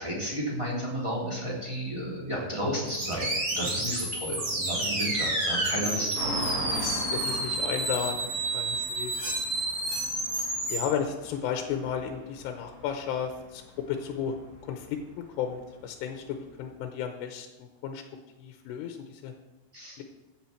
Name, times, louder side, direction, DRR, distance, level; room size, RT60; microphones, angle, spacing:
voice 1, 0.0-6.3 19.7-20.0, equal, 10° right, -5 dB, 2.7 m, -32 dB
sound 1, 2.9-10.8, right 2 dB, 40° right, 1.0 m, -30 dB
voice 2, 4.8-5.2 5.8-6.0 6.7-9.3 10.7-13.6 13.9-14.4 14.6-18.0 18.4-19.3 20.0-20.1, left 8 dB, 80° left, 5 dB, 2.8 m, -34 dB
sound 2, 6.1-16.7, right 1 dB, 60° right, 4.5 m, -41 dB
15.5 x 8.3 x 4.4 m, 1.1 s
omnidirectional pair, 5.1 m